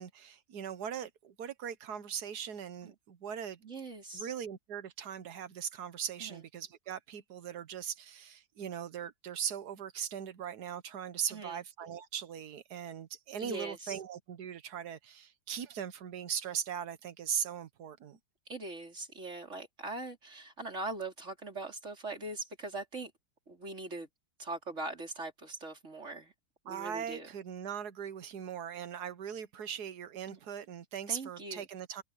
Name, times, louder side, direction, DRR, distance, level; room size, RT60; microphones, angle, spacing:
voice 1, 0.0-3.6 4.1-18.2 26.7-32.0, right 8 dB, 65° right, 1.7 m, -39 dB
voice 2, 3.6-4.3 6.2-6.4 11.3-11.6 13.4-14.0 18.5-23.1 23.5-24.1 24.4-26.3 26.6-27.3 30.3-30.4 31.1-31.7, right 2 dB, 40° right, 4.9 m, -41 dB
omnidirectional pair, 1.9 m